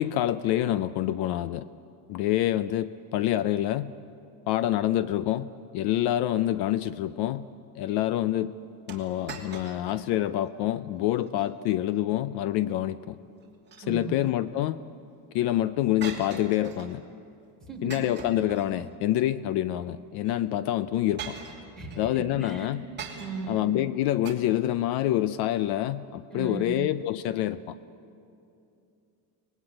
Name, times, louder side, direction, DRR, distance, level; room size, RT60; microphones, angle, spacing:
voice 1, 0.0-1.7 2.1-3.9 4.5-5.5 5.7-7.5 7.8-8.5 8.9-13.2 13.9-14.8 15.3-17.0 17.8-21.4 22.0-22.8 23.5-27.8, left 13 dB, 55° left, 15 dB, 0.6 m, -27 dB
sound 1, 8.9-10.1 10.4-10.5 11.1-11.5 13.4-14.3 16.0-17.0 17.9-19.1 20.2-20.3 21.2-22.0 23.0-23.6 24.2-24.3, right 6 dB, 20° right, 2.8 m, -42 dB
voice 2, 13.8-14.2 17.6-17.9 21.8-22.7 23.1-23.7 26.3-26.8, right 5 dB, ahead, 3 dB, 3.5 m, -37 dB
24.5 x 20.0 x 8.7 m, 2.7 s
cardioid pair, 160°, 48 cm